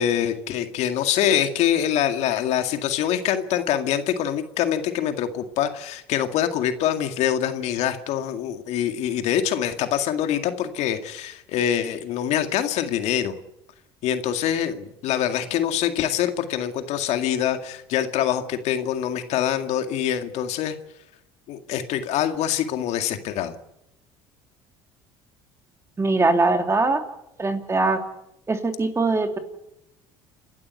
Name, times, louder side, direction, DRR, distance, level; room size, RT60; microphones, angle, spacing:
voice 1, 0.0-13.4 14.0-20.8 21.5-23.5, left 10 dB, 65° left, 8 dB, 2.1 m, -24 dB
voice 2, 26.0-27.0 27.4-28.0 28.5-29.4, right 3 dB, 20° right, 6 dB, 3.1 m, -21 dB
28.5 x 12.5 x 9.6 m, 0.86 s
supercardioid pair, 85°, 12 cm